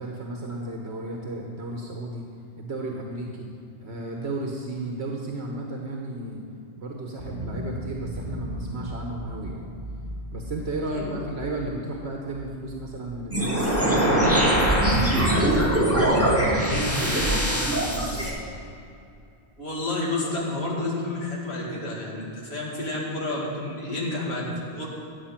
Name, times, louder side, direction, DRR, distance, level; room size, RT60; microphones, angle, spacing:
voice 1, 0.0-2.2 2.6-3.5 3.8-6.4 6.8-9.7 10.3-15.6 15.9-18.3, right 2 dB, 75° right, 0 dB, 1.4 m, -34 dB
sound 1, 7.2-14.3, equal, 40° right, 2.2 m, -37 dB
voice 2, 10.9-11.3 19.6-24.9, left 2 dB, 75° left, -4 dB, 2.5 m, -30 dB
sound 2, 13.3-18.3, right 1 dB, 15° right, 2.1 m, -22 dB
14.0 x 8.6 x 5.8 m, 2.5 s
omnidirectional pair, 1.1 m